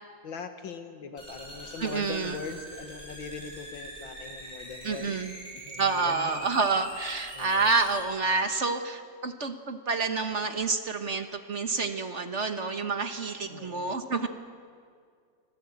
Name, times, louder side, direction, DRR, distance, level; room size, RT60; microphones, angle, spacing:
voice 1, 0.2-5.1 5.6-6.5 7.3-7.7 13.5-14.0, left 5 dB, 90° left, 7 dB, 2.4 m, -41 dB
sound 1, 1.2-8.0, right 1 dB, 20° right, 7.9 m, -44 dB
voice 2, 1.8-2.4 4.8-5.3 5.8-14.3, right 4 dB, 45° right, 7 dB, 1.3 m, -28 dB
25.0 x 18.5 x 8.8 m, 2.1 s
omnidirectional pair, 2.0 m